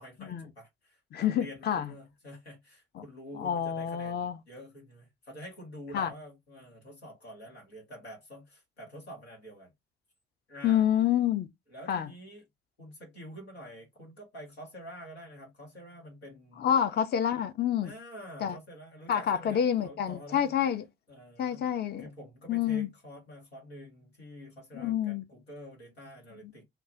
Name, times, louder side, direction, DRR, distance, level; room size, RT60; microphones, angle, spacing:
voice 1, 0.0-9.7 10.5-10.9 11.7-12.4 12.8-16.7 17.8-20.6 21.1-21.7 22.0-26.7, equal, 90° left, 1.1 m, -47 dB
voice 2, 1.1-1.9 3.0-3.1 3.4-4.4 5.9-6.1 10.6-11.5 11.9-12.1 16.6-17.9 18.4-18.6 19.1-20.9 21.4-22.1 22.5-22.9 24.7-25.2, left 9 dB, 30° left, 0.5 m, -28 dB
2.3 x 2.2 x 3.6 m
figure-of-eight pair, 45°, 31 cm